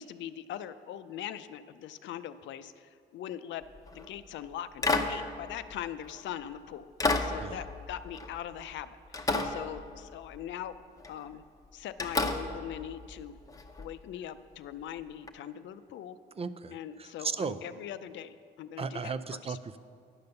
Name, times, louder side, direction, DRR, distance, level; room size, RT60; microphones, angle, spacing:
voice 1, 0.0-3.6 3.9-6.9 7.2-10.7 11.1-11.4 11.7-13.4 13.8-16.2 16.7-19.6, left 10 dB, 80° left, 12 dB, 0.4 m, -41 dB
sound 1, 3.8-4.1 4.8-6.3 7.0-8.8 9.1-10.4 11.0-11.3 12.0-13.9 15.3-15.4, left 3 dB, 20° left, 0.8 m, -32 dB
voice 2, 16.4-17.6 18.8-19.8, right 5 dB, 30° right, 13 dB, 0.4 m, -36 dB
10.5 x 5.3 x 6.7 m, 2.3 s
cardioid pair, 80°, 19 cm